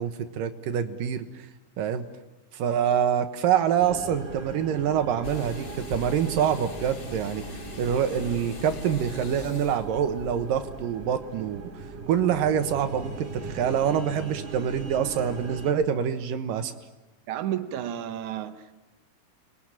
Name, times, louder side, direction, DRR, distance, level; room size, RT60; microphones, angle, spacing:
voice 1, 0.0-1.5 1.8-2.0 2.5-7.4 7.8-11.6 12.1-16.7, right 8 dB, 90° right, 3.0 m, -26 dB
Dark Horror Forest Soundscape, 3.8-15.7, right 3 dB, 25° right, 1.9 m, -40 dB
sound 1, 5.2-11.2, left 3 dB, 40° left, 2.5 m, -41 dB
voice 2, 17.3-18.7, right 11 dB, 70° right, 2.5 m, -32 dB
29.5 x 22.0 x 8.9 m
omnidirectional pair, 3.8 m